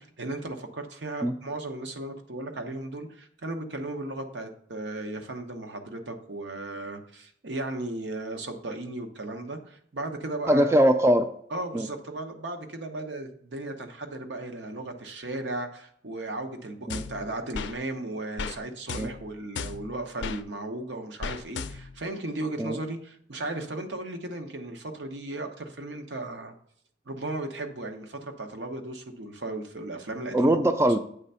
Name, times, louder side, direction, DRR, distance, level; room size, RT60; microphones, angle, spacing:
voice 1, 0.0-10.7 11.5-26.6 27.1-30.6, right 2 dB, 80° right, 5 dB, 0.9 m, -36 dB
voice 2, 10.5-11.3 11.7-11.9 16.9-17.0 19.0-19.1 22.6-22.8 30.3-31.0, right 1 dB, 15° right, 8 dB, 0.3 m, -21 dB
sound 1, 16.9-17.8 18.4-18.6 18.9-20.4 21.2-22.0, left 5 dB, 80° left, 0.4 m, -36 dB
8.0 x 3.4 x 5.5 m, 0.64 s
head